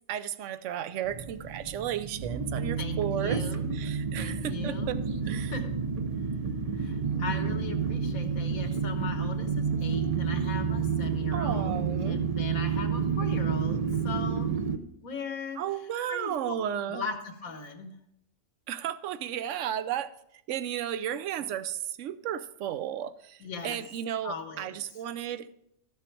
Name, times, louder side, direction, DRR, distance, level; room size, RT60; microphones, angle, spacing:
voice 1, 0.1-3.4 3.8-5.0 5.3-5.5 11.3-12.2 15.6-17.0 18.7-20.1 20.5-23.4 23.6-25.5, right 10 dB, 70° right, 11 dB, 0.8 m, -33 dB
sound 1, 1.1-14.8, right 6 dB, 45° right, 0.5 m, -30 dB
voice 2, 2.8-3.7 4.2-5.0 5.4-5.9 6.7-14.6 15.0-16.5 16.9-17.9 21.4-21.5 23.4-23.8 24.2-25.0, left 5 dB, 85° left, 6 dB, 1.7 m, -39 dB
12.5 x 6.8 x 4.5 m, 0.76 s
omnidirectional pair, 1.4 m